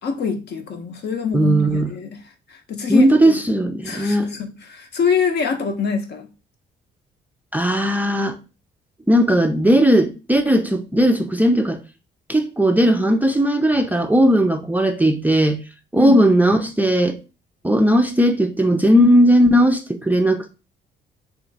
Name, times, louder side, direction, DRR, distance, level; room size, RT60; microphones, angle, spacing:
voice 1, 0.0-3.4 3.8-6.3 15.9-16.2, left 5 dB, 60° left, 0.8 m, -25 dB
voice 2, 1.3-1.9 2.9-4.3 7.5-8.4 9.1-11.8 12.3-15.6 15.9-17.2 17.6-20.5, equal, 10° right, 0.4 m, -17 dB
3.0 x 2.5 x 3.9 m
cardioid pair, 90°, 20 cm